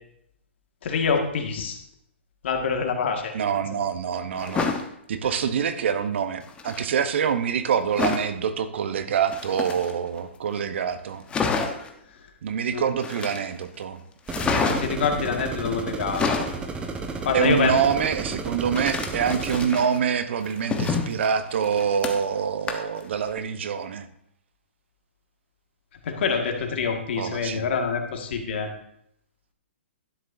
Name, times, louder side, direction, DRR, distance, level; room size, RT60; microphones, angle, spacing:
voice 1, 0.8-1.8 2.4-3.3 12.7-12.9 14.4-16.4 17.3-17.8 26.1-28.7, left 5 dB, 60° left, 4 dB, 1.8 m, -26 dB
voice 2, 3.3-4.7 5.1-11.2 12.4-14.0 17.3-24.1 27.2-27.7, right 7 dB, 65° right, 11 dB, 0.9 m, -25 dB
sound 1, 4.4-4.9 6.4-6.9 8.0-8.3 9.2-10.2 10.6-10.7 10.9-11.0 11.3-11.9 13.0-13.6 14.3-15.1 15.9-16.6 18.8-20.0 20.4-22.4 22.7-23.0 23.4-23.5, left 5 dB, 15° left, 1.0 m, -28 dB
sound 2, 14.3-19.7, right 4 dB, 15° right, 1.0 m, -33 dB
12.0 x 9.6 x 2.6 m, 0.72 s
hypercardioid pair, 130°, 7 cm